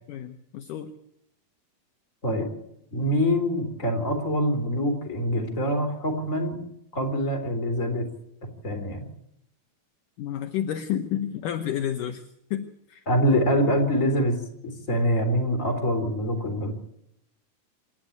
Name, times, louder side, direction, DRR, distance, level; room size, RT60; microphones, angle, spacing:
voice 1, 0.1-0.9 10.2-13.0, left 10 dB, 70° left, 7 dB, 2.4 m, -31 dB
voice 2, 2.9-6.6 6.9-8.1 8.6-9.1 13.1-14.4 14.9-16.8, equal, 20° left, 3 dB, 3.7 m, -24 dB
27.0 x 12.0 x 8.6 m, 0.77 s
omnidirectional pair, 4.3 m